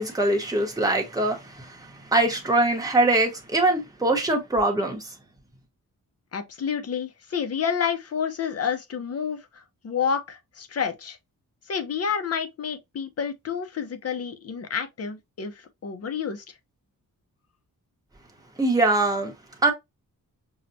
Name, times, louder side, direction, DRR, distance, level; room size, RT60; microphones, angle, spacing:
voice 1, 0.0-1.9 2.1-5.0 18.6-19.3 19.6-19.7, right 2 dB, 10° right, 0.9 m, -22 dB
voice 2, 6.3-11.2 11.7-16.5, left 7 dB, 45° left, 0.6 m, -29 dB
5.5 x 2.1 x 2.6 m
wide cardioid pair, 165°, 35 cm